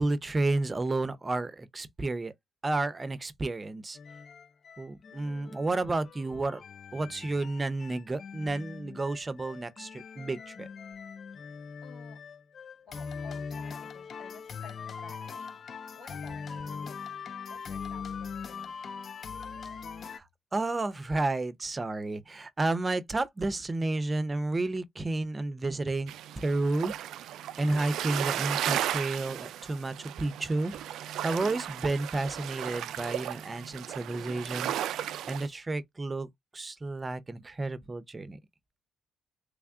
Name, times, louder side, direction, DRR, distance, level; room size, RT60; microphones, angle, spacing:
voice 1, 0.0-2.3 2.6-4.0 4.8-6.6 6.9-10.7 20.1-20.2 20.5-27.3 27.6-35.0 35.3-36.3 36.5-38.4, right 2 dB, 25° right, 0.6 m, -31 dB
sound 1, 3.9-20.2, left 6 dB, 50° left, 0.3 m, -41 dB
voice 2, 11.8-12.2 12.9-17.2 17.5-19.1, left 4 dB, 80° left, 1.9 m, -53 dB
sound 2, 26.1-35.5, right 11 dB, 80° right, 0.3 m, -35 dB
3.5 x 2.3 x 3.5 m
cardioid pair, 90°, 0 cm